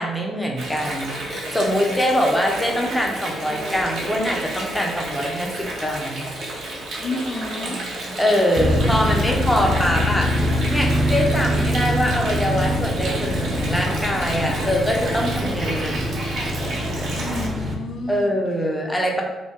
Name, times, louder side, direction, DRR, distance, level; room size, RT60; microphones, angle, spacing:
voice 1, 0.0-5.5 5.8-6.3 8.2-10.3 10.7-16.0 18.1-19.2, equal, 10° left, 0 dB, 0.6 m, -23 dB
Water, 0.6-17.5, right 1 dB, 75° right, 0.8 m, -31 dB
voice 2, 7.0-7.8 17.1-18.3, left 3 dB, 60° left, 4 dB, 0.4 m, -30 dB
sound 1, 8.6-17.7, left 1 dB, 40° right, 0.5 m, -24 dB
2.8 x 2.2 x 3.4 m, 1.1 s
cardioid pair, 90°, 0 cm